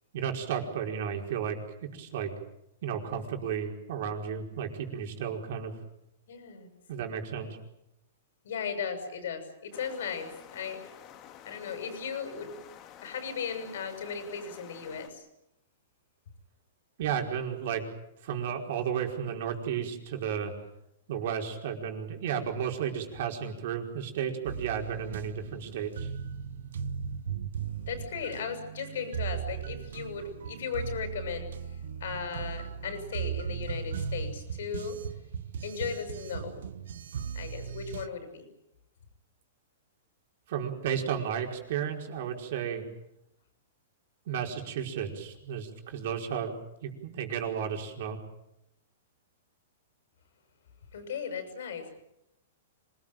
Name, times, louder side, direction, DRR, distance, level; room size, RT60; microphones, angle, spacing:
voice 1, 0.1-2.3 2.8-5.7 6.9-7.6 17.0-17.8 18.2-20.5 21.1-26.1 40.5-42.8 44.3-46.5 46.8-48.2, right 8 dB, 60° right, 3 dB, 4.9 m, -33 dB
voice 2, 6.3-6.7 8.4-10.8 11.4-12.5 13.0-15.3 27.9-31.5 32.0-35.0 35.6-36.6 37.3-38.5 50.9-51.9, left 6 dB, 75° left, 8 dB, 6.8 m, -36 dB
sound 1, 9.7-15.1, left 10 dB, 35° left, 2.3 m, -50 dB
sound 2, 24.5-38.1, right 7 dB, 80° right, 1.2 m, -37 dB
26.0 x 20.0 x 9.1 m, 0.82 s
hypercardioid pair, 135°, 0 cm